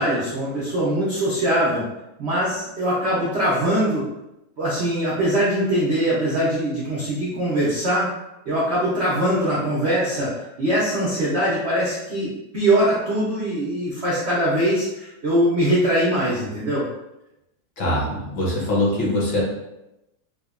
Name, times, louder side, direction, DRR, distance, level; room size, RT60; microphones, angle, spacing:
voice 1, 0.0-1.8 2.2-4.0 4.6-8.1 8.5-10.3 10.6-16.8, right 1 dB, 90° right, -7 dB, 0.5 m, -22 dB
voice 2, 17.8-19.4, left 1 dB, 65° left, -5 dB, 1.7 m, -22 dB
4.8 x 2.1 x 2.4 m, 0.91 s
omnidirectional pair, 2.3 m